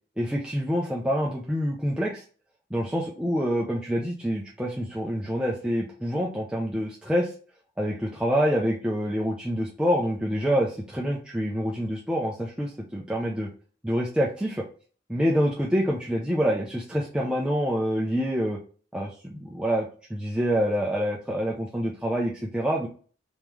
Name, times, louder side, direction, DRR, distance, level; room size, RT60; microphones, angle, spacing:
voice 1, 0.2-2.2 2.7-7.3 7.8-13.5 13.8-14.6 15.1-18.6 18.9-22.9, equal, 5° right, -3 dB, 0.5 m, -26 dB
3.6 x 3.0 x 4.7 m, 0.40 s
head